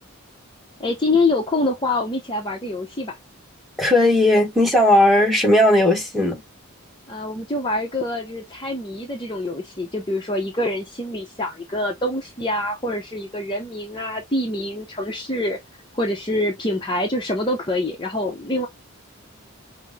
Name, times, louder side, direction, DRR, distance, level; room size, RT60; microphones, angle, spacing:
voice 1, 0.8-3.1 7.1-15.6 15.9-18.7, left 2 dB, 20° left, 0.6 m, -25 dB
voice 2, 3.8-6.4, left 1 dB, ahead, 1.1 m, -16 dB
5.6 x 2.1 x 3.4 m
head